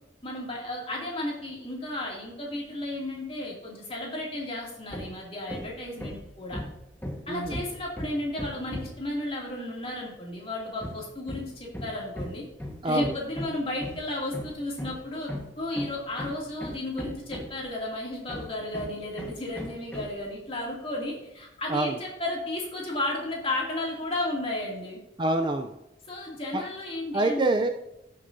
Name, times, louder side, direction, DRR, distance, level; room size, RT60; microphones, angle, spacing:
voice 1, 0.2-6.6 7.3-12.4 12.8-15.3 15.6-25.0 26.1-27.5, left 1 dB, 30° left, -3 dB, 2.5 m, -33 dB
Hammer, 4.9-5.2 5.5-9.1 10.8-17.7 18.3-20.2, left 1 dB, 10° left, 1.4 m, -38 dB
voice 2, 7.3-7.6 12.8-13.1 21.7-22.0 25.2-25.8 26.5-26.7 27.1-27.7, right 2 dB, 25° right, 5 dB, 0.4 m, -26 dB
16.0 x 6.7 x 2.7 m, 0.92 s
head